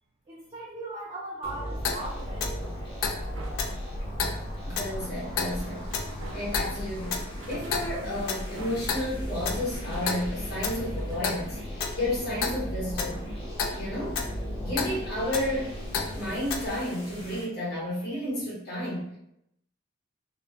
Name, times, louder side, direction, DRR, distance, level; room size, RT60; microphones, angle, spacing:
voice 1, 0.3-2.6, right 2 dB, 25° right, -5 dB, 0.3 m, -38 dB
sound 1, 1.4-17.4, equal, 25° left, 0.6 m, -39 dB
Clock, 1.7-16.7, left 4 dB, 85° left, 0.4 m, -34 dB
sound 2, 2.4-4.0 5.0-12.1, right 2 dB, 75° right, 0.5 m, -47 dB
voice 2, 4.6-5.9 6.3-7.2 7.5-11.6 11.9-13.2 13.7-14.3 14.6-15.7 16.1-19.2, left 1 dB, 45° left, -8 dB, 1.0 m, -32 dB
2.3 x 2.0 x 2.7 m, 0.77 s
head